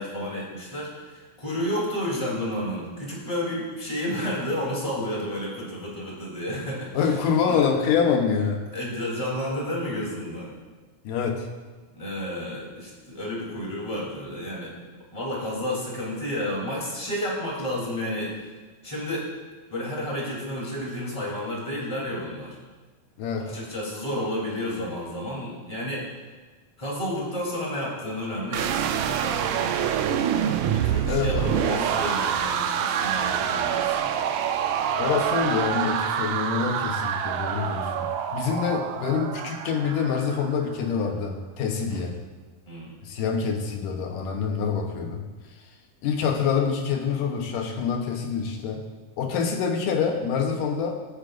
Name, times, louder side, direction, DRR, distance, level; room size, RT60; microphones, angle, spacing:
voice 1, 0.0-7.2 7.5-7.6 8.7-10.5 11.9-14.7 15.1-18.5 18.8-19.3 19.7-22.6 23.5-26.2 26.8-29.7 30.7-34.1 41.9-42.1 42.7-42.9, left 1 dB, 10° left, -5 dB, 3.0 m, -31 dB
voice 2, 6.9-8.6 11.0-11.5 23.2-23.5 31.1-31.5 35.0-42.1 43.0-45.2 46.0-48.8 49.2-51.0, left 6 dB, 80° left, 2 dB, 2.6 m, -26 dB
sound 1, 28.5-40.6, right 8 dB, 80° right, 2.1 m, -26 dB
22.5 x 8.5 x 2.6 m, 1.3 s
omnidirectional pair, 3.7 m